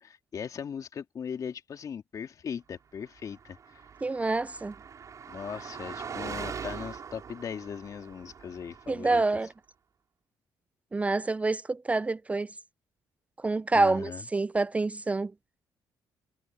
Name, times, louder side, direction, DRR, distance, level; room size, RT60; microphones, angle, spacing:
voice 1, 0.0-3.6 5.3-9.2 13.7-14.2, left 7 dB, 50° left, 3.0 m, -39 dB
Car passing by, 3.2-9.2, right 6 dB, 50° right, 5.8 m, -42 dB
voice 2, 4.0-4.7 8.9-9.5 10.9-12.5 13.4-15.3, right 3 dB, 20° right, 0.4 m, -27 dB
cardioid pair, 80°, 7 cm